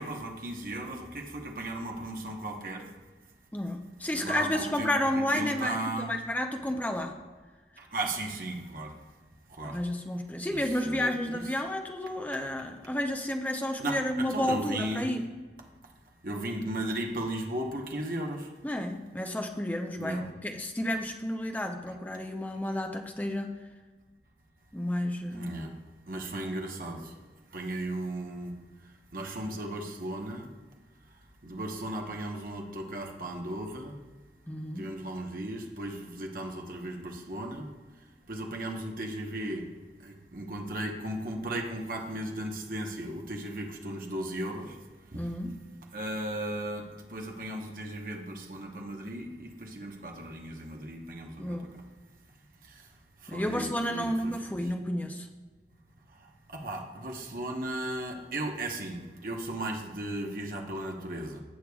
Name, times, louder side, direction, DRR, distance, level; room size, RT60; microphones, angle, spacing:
voice 1, 0.0-2.8 4.1-6.1 7.8-8.9 9.6-9.8 10.5-10.6 10.8-11.4 13.8-15.2 16.2-18.5 20.0-20.2 25.3-25.7 26.1-27.1 27.5-28.6 29.1-30.5 31.4-33.9 34.8-37.7 38.3-39.6 40.0-44.8 45.1-45.2 45.9-46.8 47.1-51.6 52.7-52.8 53.2-54.6 56.5-61.4, right 1 dB, 50° right, 1 dB, 1.0 m, -36 dB
voice 2, 3.5-7.1 9.6-15.3 18.6-23.6 24.7-25.6 34.5-34.9 45.1-45.5 51.4-51.7 53.3-55.3, left 1 dB, 10° left, 4 dB, 0.6 m, -31 dB
16.0 x 6.7 x 2.4 m, 1.3 s
head